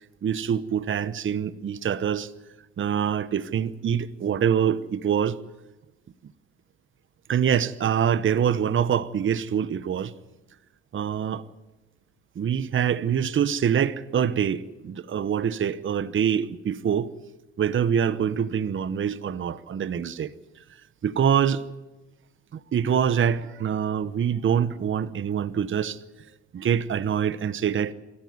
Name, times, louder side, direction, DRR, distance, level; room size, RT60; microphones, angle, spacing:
voice 1, 0.2-2.3 2.8-5.4 7.3-10.1 10.9-11.4 12.4-17.1 17.6-20.3 21.0-21.6 22.5-26.0 26.5-27.9, right 8 dB, 40° right, 0.9 m, -25 dB
25.5 x 14.0 x 9.5 m
cardioid pair, 90°, 32 cm